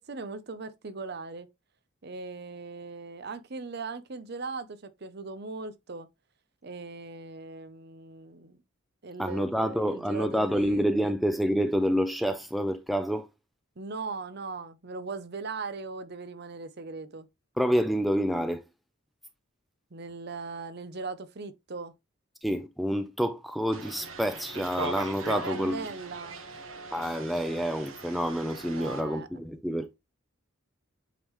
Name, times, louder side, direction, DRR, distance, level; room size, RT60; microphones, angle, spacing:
voice 1, 0.1-1.5 2.0-6.1 6.6-8.6 9.0-11.1 13.8-17.3 19.9-21.9 25.2-26.4 28.7-29.3, right 4 dB, 50° right, 0.7 m, -39 dB
voice 2, 9.2-13.3 17.6-18.6 22.4-25.8 26.9-29.9, equal, ahead, 0.4 m, -28 dB
sound 1, 23.7-29.0, right 3 dB, 70° right, 1.4 m, -40 dB
8.3 x 3.7 x 3.1 m
head